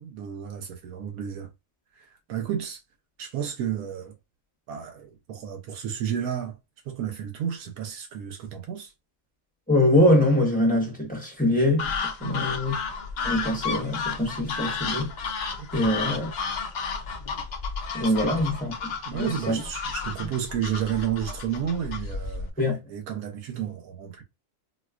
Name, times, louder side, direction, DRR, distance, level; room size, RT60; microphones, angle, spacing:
voice 1, 0.0-1.5 1.9-2.8 3.2-4.1 4.7-6.6 6.8-8.9 12.2-12.6 15.6-15.9 18.1-18.5 19.1-24.2, right 9 dB, 85° right, 1.1 m, -32 dB
voice 2, 9.7-12.7 13.2-15.1 15.7-16.3 17.9-19.6 22.6-22.8, left 1 dB, 5° left, 0.9 m, -23 dB
sound 1, 11.8-22.5, left 5 dB, 75° left, 0.4 m, -32 dB
4.1 x 2.3 x 2.3 m
omnidirectional pair, 1.5 m